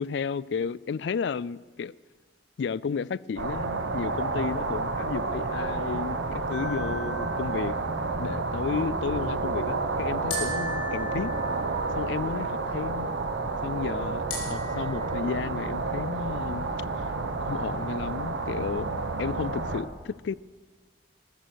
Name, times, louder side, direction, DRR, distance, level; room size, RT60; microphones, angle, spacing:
voice 1, 0.0-1.9 2.6-7.8 8.2-11.3 11.9-13.1 13.6-16.7 17.0-17.1 17.4-18.9 19.2-20.3, left 6 dB, 70° left, 0.3 m, -32 dB
sound 1, 3.4-19.8, right 3 dB, 85° right, 1.2 m, -30 dB
sound 2, 6.5-8.0 10.3-12.0 14.3-15.4, left 1 dB, 85° left, 5.0 m, -38 dB
14.0 x 13.5 x 6.3 m
head